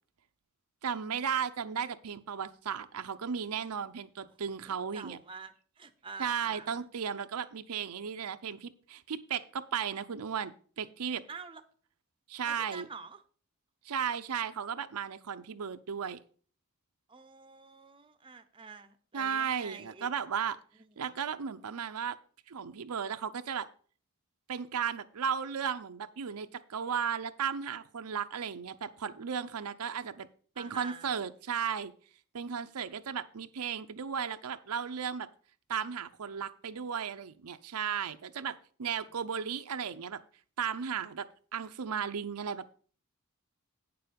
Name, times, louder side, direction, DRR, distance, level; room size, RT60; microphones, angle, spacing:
voice 1, 0.8-5.2 6.2-11.2 12.3-12.9 13.8-16.2 19.1-20.6 21.0-22.2 22.5-23.7 24.5-30.3 30.6-31.9 32.3-35.3 35.7-40.2 40.6-41.3 41.5-42.7, right 7 dB, 85° right, 0.6 m, -35 dB
voice 2, 4.6-6.9 11.3-11.6 12.4-13.2 17.1-20.1 21.0-21.2 30.6-31.2, right 5 dB, 25° right, 0.6 m, -47 dB
9.3 x 6.8 x 5.2 m
head